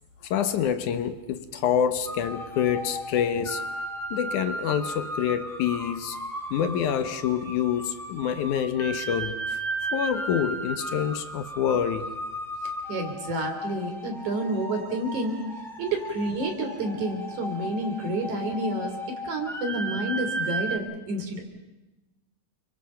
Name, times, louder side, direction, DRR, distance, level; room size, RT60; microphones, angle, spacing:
voice 1, 0.3-3.6 4.1-6.2 6.5-9.6 9.9-12.1, left 8 dB, 70° left, 10 dB, 2.4 m, -27 dB
sound 1, 2.0-20.8, right 1 dB, ahead, 2.9 m, -35 dB
voice 2, 12.9-15.4 15.8-21.4, right 1 dB, 65° right, 4 dB, 5.0 m, -29 dB
29.0 x 24.5 x 5.8 m, 1.0 s
omnidirectional pair, 3.8 m